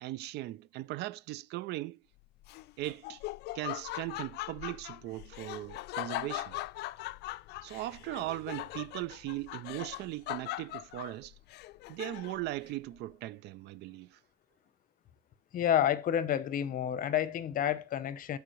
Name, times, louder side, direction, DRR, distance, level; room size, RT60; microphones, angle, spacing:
voice 1, 0.0-2.0 2.8-3.2 3.5-6.6 7.6-11.3 11.9-14.2, right 17 dB, 80° right, 0.4 m, -39 dB
Laughter, 2.4-12.5, left 17 dB, 80° left, 0.4 m, -40 dB
voice 2, 15.5-18.4, left 10 dB, 55° left, 0.8 m, -29 dB
13.0 x 4.9 x 3.1 m
cardioid pair, 110°, 17 cm